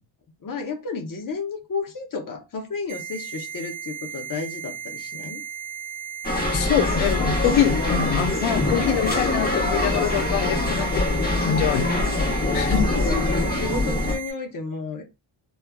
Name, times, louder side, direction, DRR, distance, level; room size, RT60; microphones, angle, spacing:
voice 1, 0.4-5.4 12.9-15.0, left 4 dB, 45° left, 0.7 m, -32 dB
sound 1, 2.9-14.3, right 8 dB, 85° right, 0.8 m, -36 dB
sound 2, 6.2-14.1, left 2 dB, 20° left, 1.0 m, -24 dB
voice 2, 6.5-13.0, left 9 dB, 90° left, 0.7 m, -25 dB
3.1 x 2.3 x 2.2 m
cardioid pair, 105°, 48 cm